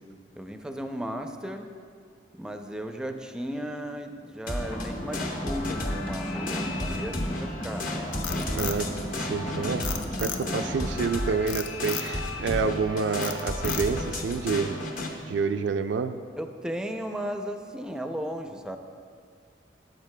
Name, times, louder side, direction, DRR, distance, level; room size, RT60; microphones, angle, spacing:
voice 1, 0.3-1.7 2.4-8.5 16.4-18.8, equal, 5° right, 5 dB, 0.4 m, -35 dB
sound 1, 4.5-15.1, left 1 dB, 50° left, 0.9 m, -33 dB
sound 2, 4.6-10.9, equal, 35° left, 1.0 m, -36 dB
Frog, 7.9-9.4 9.8-10.7 11.5-12.1 12.6-12.9 13.2-14.1, left 8 dB, 85° left, 0.6 m, -35 dB
voice 2, 8.5-8.9 9.2-9.9 10.2-14.8 15.3-16.2, right 5 dB, 70° right, 8 dB, 0.3 m, -28 dB
14.0 x 7.5 x 2.2 m, 2.2 s
head